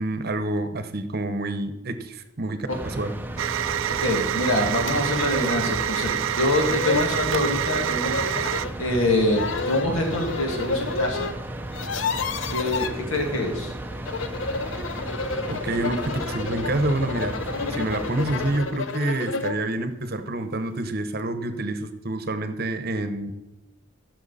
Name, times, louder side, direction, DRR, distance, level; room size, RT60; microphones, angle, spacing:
voice 1, 0.0-3.1 15.5-17.4 17.7-23.3, right 2 dB, 45° right, 9 dB, 0.9 m, -28 dB
sound 1, 2.7-18.6, right 1 dB, 10° right, 0.5 m, -34 dB
sound 2, 3.4-8.6, right 10 dB, 65° right, 0.4 m, -27 dB
voice 2, 4.0-11.3 12.5-13.7, left 1 dB, 75° left, 1 dB, 2.3 m, -25 dB
sound 3, 4.9-5.0 5.4-5.5 6.2-6.3 6.5-7.1 8.0-8.8 9.3-11.3 11.6-12.9 13.9-19.6, left 4 dB, 60° left, 0.6 m, -30 dB
15.0 x 6.2 x 4.1 m, 1.0 s
head